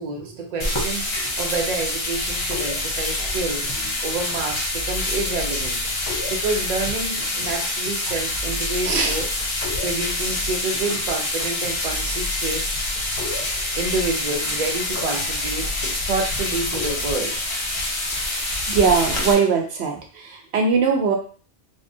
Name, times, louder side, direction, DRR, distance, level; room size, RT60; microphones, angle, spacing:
voice 1, 0.0-3.7 4.0-5.8 6.3-9.3 9.8-12.7 13.8-15.7 16.1-17.4, right 3 dB, 50° right, 2 dB, 0.6 m, -28 dB
sound 1, 0.6-19.3, left 1 dB, 35° left, 0.5 m, -26 dB
sound 2, 2.2-16.9, left 3 dB, 75° left, 1.1 m, -36 dB
voice 2, 8.8-9.2 18.7-21.2, right 5 dB, 85° right, 3 dB, 0.9 m, -20 dB
3.5 x 2.1 x 2.6 m, 0.39 s
omnidirectional pair, 1.1 m